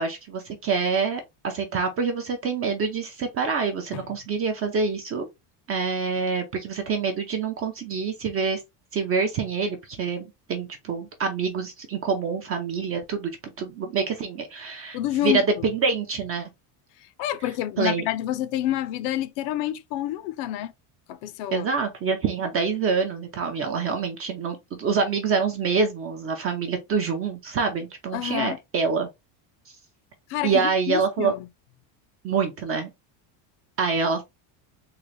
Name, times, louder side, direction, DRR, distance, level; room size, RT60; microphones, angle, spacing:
voice 1, 0.0-5.3 5.7-8.6 8.9-15.0 15.2-16.5 17.8-18.1 21.5-29.1 30.4-31.3 32.2-32.9 33.8-34.2, right 5 dB, 30° right, 0.4 m, -26 dB
voice 2, 14.9-15.7 17.0-20.7 21.1-21.7 28.1-28.6 30.3-31.5, left 13 dB, 60° left, 0.5 m, -28 dB
3.8 x 2.5 x 3.1 m
cardioid pair, 155°, 49 cm